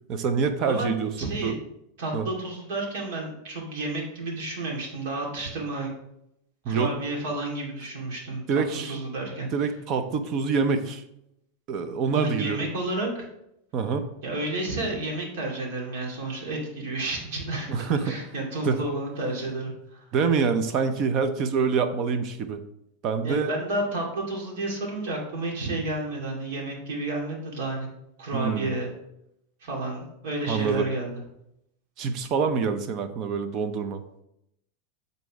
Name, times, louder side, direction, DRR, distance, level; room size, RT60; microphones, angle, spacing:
voice 1, 0.1-1.5 2.1-2.3 6.6-6.9 8.5-8.9 9.5-11.0 11.7-12.6 13.7-14.1 17.7-18.2 18.6-18.8 20.1-22.6 23.0-23.5 28.3-28.7 30.4-30.8 32.0-34.0, right 5 dB, 40° right, 9 dB, 0.7 m, -26 dB
voice 2, 1.2-1.5 2.0-5.9 6.7-9.5 12.1-13.3 14.2-17.7 18.0-20.1 23.2-27.9 28.2-28.9 29.6-31.2, right 2 dB, 70° right, -1 dB, 2.3 m, -31 dB
8.1 x 4.1 x 3.5 m, 0.80 s
supercardioid pair, 135°, 0 cm